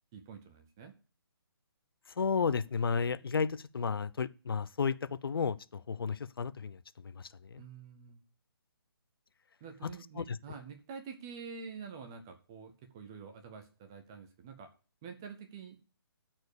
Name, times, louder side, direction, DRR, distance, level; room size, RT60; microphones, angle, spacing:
voice 1, 0.1-0.9 7.6-8.2 9.6-14.7 15.0-15.8, right 5 dB, 10° right, 0.4 m, -47 dB
voice 2, 2.2-6.8 7.0-7.6 10.2-10.4, left 5 dB, 65° left, 0.6 m, -33 dB
13.0 x 4.5 x 6.7 m
hypercardioid pair, 175°, 13 cm